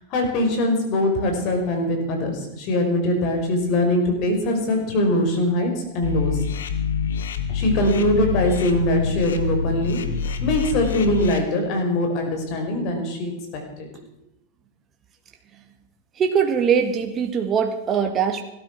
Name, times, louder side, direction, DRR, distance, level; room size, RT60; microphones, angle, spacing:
voice 1, 0.1-6.4 7.5-10.0 10.4-13.9, left 1 dB, 50° left, 4 dB, 5.5 m, -22 dB
sound 1, 6.0-11.4, left 6 dB, 90° left, 1.7 m, -26 dB
voice 2, 16.1-18.4, right 7 dB, 25° right, 4 dB, 1.9 m, -21 dB
17.5 x 13.0 x 6.3 m, 0.85 s
hypercardioid pair, 130°, 0 cm